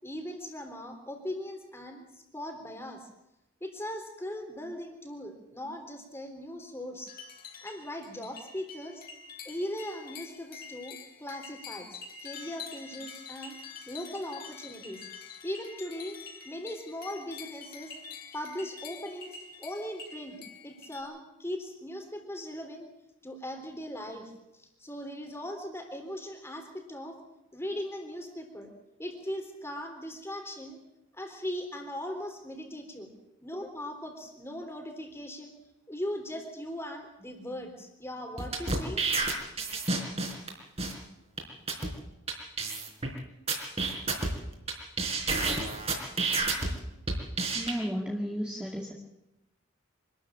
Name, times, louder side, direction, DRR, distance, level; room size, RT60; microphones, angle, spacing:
voice 1, 0.0-3.1 3.6-7.1 7.6-9.0 9.5-13.6 13.9-15.1 15.4-16.2 16.4-18.0 18.3-22.9 23.2-27.2 27.5-28.7 29.0-30.8 31.1-33.1 33.4-35.5 35.9-39.0, left 1 dB, 15° left, 4 dB, 3.6 m, -39 dB
sound 1, 7.1-21.0, left 6 dB, 45° left, 3.9 m, -46 dB
sound 2, 38.4-40.5 40.8-40.9 41.4-41.5 41.7-41.9 42.3-42.4 42.6-43.1 43.5-44.7 45.0-46.7 47.1-47.7, right 3 dB, 30° right, 4.2 m, -29 dB
voice 2, 47.5-48.9, equal, 5° right, -2 dB, 2.2 m, -33 dB
25.0 x 13.0 x 8.8 m, 0.89 s
head